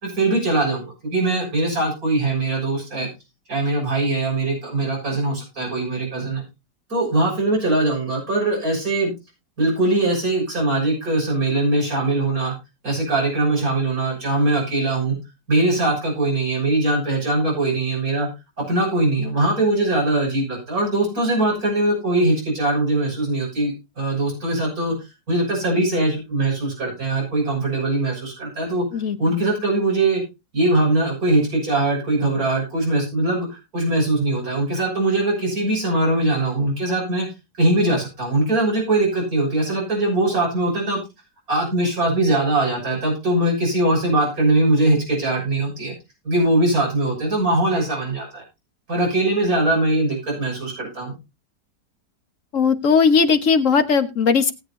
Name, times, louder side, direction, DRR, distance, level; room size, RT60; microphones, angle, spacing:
voice 1, 0.0-3.1 3.5-6.4 6.9-9.1 9.6-12.5 12.8-15.2 15.5-18.3 18.6-24.9 25.3-28.8 29.2-30.2 30.5-37.3 37.6-41.0 41.5-45.9 46.2-48.4 48.9-51.1, right 2 dB, 55° right, -2 dB, 7.1 m, -21 dB
voice 2, 52.5-54.5, left 5 dB, 50° left, 8 dB, 1.5 m, -17 dB
19.0 x 8.2 x 2.7 m, 0.26 s
omnidirectional pair, 1.8 m